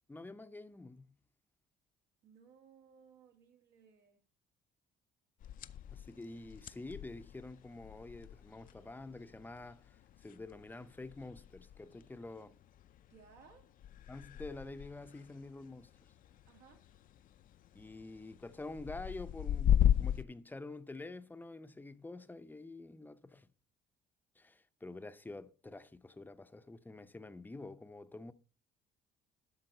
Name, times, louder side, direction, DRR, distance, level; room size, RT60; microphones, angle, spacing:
voice 1, 0.1-1.1 5.9-12.6 14.1-16.1 17.7-23.5 24.4-28.3, left 2 dB, 10° left, 0.7 m, -48 dB
voice 2, 2.2-4.2 13.1-13.7 16.5-16.9, right 6 dB, 80° right, 2.6 m, -61 dB
sound 1, 5.4-20.2, left 10 dB, 55° left, 0.6 m, -38 dB
12.0 x 6.2 x 4.3 m
cardioid pair, 110°, 17 cm